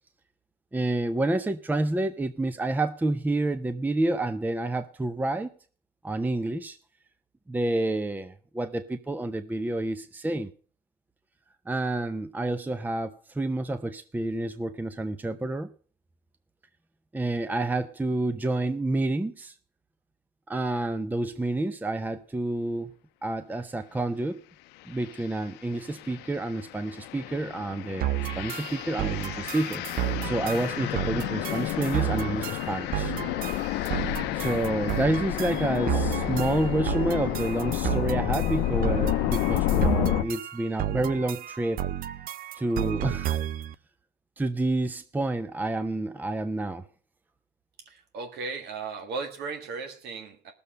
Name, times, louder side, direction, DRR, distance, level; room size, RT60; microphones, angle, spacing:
voice 1, 0.7-5.5 6.0-6.8 7.5-10.5 11.7-15.7 17.1-19.5 20.5-22.9 23.2-24.4 24.9-28.1 28.3-29.8 30.2-33.1 34.3-41.8 42.6-43.4 44.4-46.9, right 2 dB, 10° right, 11 dB, 0.6 m, -29 dB
sound 1, 25.0-25.2 25.8-40.2, left 15 dB, 90° left, 0.6 m, -30 dB
sound 2, 28.0-43.7, right 13 dB, 60° right, 0.6 m, -32 dB
voice 2, 47.8-50.5, right 4 dB, 75° right, 5 dB, 1.7 m, -36 dB
18.0 x 7.0 x 5.1 m, 0.41 s
cardioid pair, 110°, 17 cm